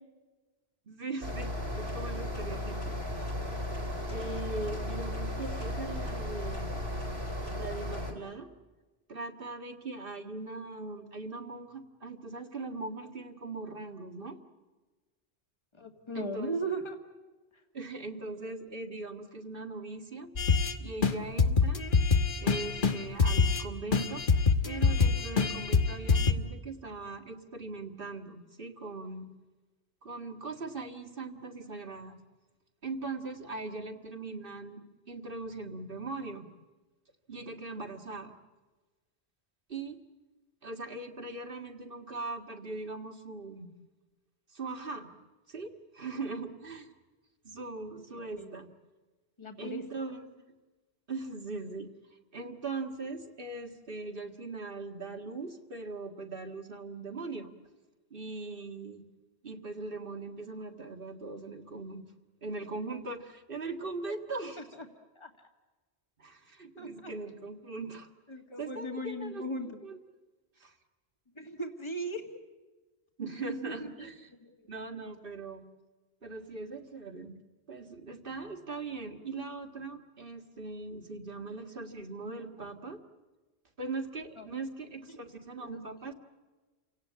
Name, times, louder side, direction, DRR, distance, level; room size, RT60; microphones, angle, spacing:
voice 1, 0.9-3.3 4.1-6.8 7.5-8.5 9.1-14.4 16.1-16.6 17.7-20.3 20.8-21.8 22.4-24.2 24.6-29.3 30.0-32.2 32.8-36.5 37.3-38.4 39.7-40.0 40.6-43.7 44.5-45.1 45.5-46.9 47.4-48.7 49.6-50.3 51.1-57.5 58.1-59.1 59.4-62.0 62.4-64.6 66.2-68.1 68.6-69.4 69.8-70.0 70.6-70.7 73.2-74.3 74.7-75.7 76.2-77.3 77.7-83.0 83.8-86.1, right 3 dB, 55° right, 5 dB, 2.0 m, -40 dB
sound 1, 1.2-8.1, left 1 dB, 75° right, 4.1 m, -35 dB
voice 2, 15.7-17.0 48.1-48.5 49.4-49.8 64.6-64.9 65.2-65.3 66.8-67.1 68.3-69.8 71.4-72.2 73.7-73.9 74.4-74.5 84.4-84.5 85.6-85.8, right 1 dB, 25° left, 4 dB, 2.1 m, -38 dB
sound 2, 20.4-20.7 21.0-21.1 21.4-23.6 23.9-26.3, left 5 dB, 50° left, 1.4 m, -25 dB
29.5 x 17.5 x 8.6 m, 1.2 s
omnidirectional pair, 1.1 m